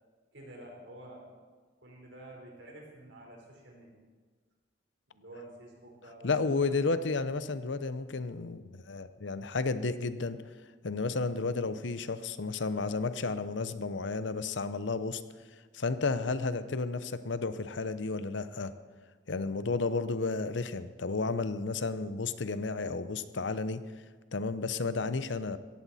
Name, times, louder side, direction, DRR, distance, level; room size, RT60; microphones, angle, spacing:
voice 1, 0.3-1.3 1.8-4.0 5.1-6.9, right 1 dB, 75° right, 0 dB, 4.2 m, -50 dB
voice 2, 6.2-10.4 10.8-15.2 15.7-18.7 19.3-23.8 24.3-25.6, left 3 dB, 75° left, 13 dB, 0.7 m, -32 dB
17.5 x 14.5 x 4.2 m, 1.5 s
head